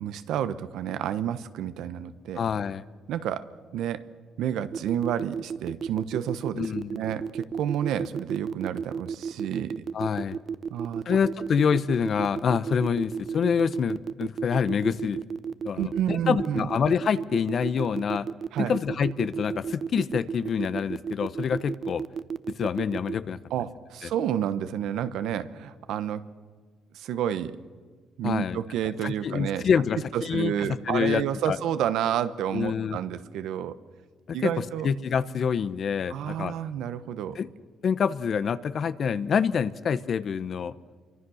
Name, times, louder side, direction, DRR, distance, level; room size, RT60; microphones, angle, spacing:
voice 1, 0.0-2.4 3.1-4.0 4.4-9.7 10.7-11.0 15.8-16.7 18.5-18.7 23.5-26.2 26.9-27.5 28.2-29.7 30.1-33.8 34.3-34.9 36.1-37.4, right 10 dB, 85° right, 12 dB, 1.1 m, -30 dB
voice 2, 2.4-2.8 6.5-7.0 9.9-10.4 11.1-15.2 15.6-18.3 18.6-22.0 22.6-23.4 24.0-24.1 28.2-28.6 29.0-30.5 30.9-31.6 32.5-33.0 34.3-36.5 37.4-37.5 37.8-40.7, left 7 dB, 55° left, 14 dB, 0.9 m, -26 dB
sound 1, 4.7-23.1, right 6 dB, 50° right, 0.6 m, -32 dB
27.0 x 24.0 x 6.4 m, 1.5 s
cardioid pair, 90°, 0 cm